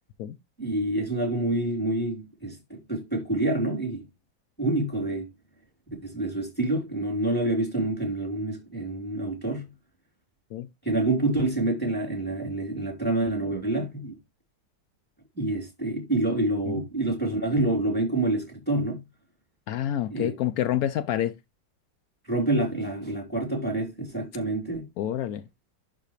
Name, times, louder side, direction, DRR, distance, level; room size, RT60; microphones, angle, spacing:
voice 1, 0.6-4.0 4.6-5.3 5.9-9.7 10.8-14.2 15.4-19.0 20.1-20.3 22.3-24.8, right 2 dB, 5° left, 3.1 m, -27 dB
voice 2, 19.7-21.3 25.0-25.4, left 11 dB, 85° left, 0.8 m, -28 dB
11.5 x 4.1 x 3.0 m
omnidirectional pair, 2.2 m